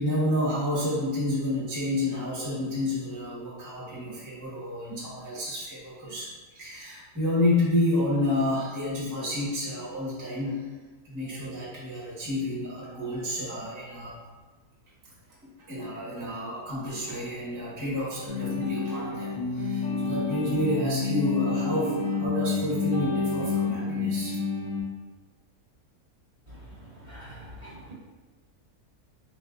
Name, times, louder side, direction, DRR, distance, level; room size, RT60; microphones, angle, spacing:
voice 1, 0.0-10.8 11.0-14.2 15.4-24.4, left 1 dB, 15° right, -8 dB, 0.9 m, -30 dB
sound 1, 18.3-24.8, left 4 dB, 60° left, 1.1 m, -29 dB
voice 2, 27.0-27.9, equal, 40° right, -9 dB, 1.2 m, -44 dB
4.1 x 3.3 x 2.4 m, 1.3 s
omnidirectional pair, 1.6 m